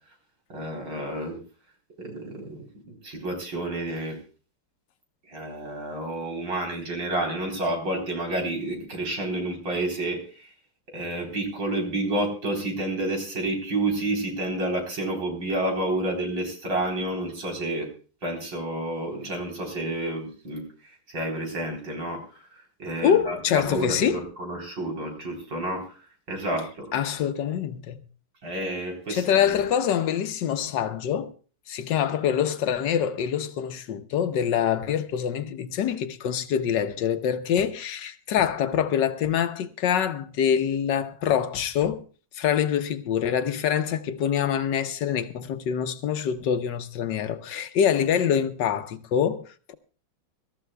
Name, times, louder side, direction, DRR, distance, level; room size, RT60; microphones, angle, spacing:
voice 1, 0.5-1.4 2.0-2.6 3.0-4.2 5.3-10.5 10.9-17.9 18.2-22.2 22.8-25.9 26.3-26.9 28.4-29.6, right 1 dB, 75° right, 4.4 m, -30 dB
voice 2, 23.0-24.2 26.9-28.0 29.1-31.3 31.7-42.0 42.3-49.7, left 8 dB, 70° left, 1.4 m, -25 dB
25.0 x 13.5 x 2.3 m
omnidirectional pair, 2.1 m